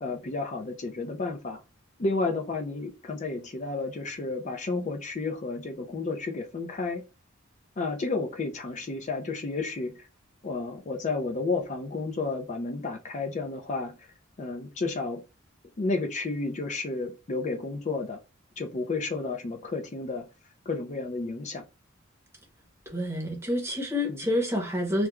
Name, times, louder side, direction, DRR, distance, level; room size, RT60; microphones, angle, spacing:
voice 1, 0.0-1.6 2.0-7.0 7.8-10.0 10.4-14.0 14.4-15.2 15.8-18.2 18.6-20.3 20.7-21.6 24.1-24.3, left 3 dB, 35° left, 0.5 m, -31 dB
voice 2, 22.9-25.1, left 1 dB, 10° right, 0.8 m, -28 dB
2.3 x 2.3 x 2.9 m
head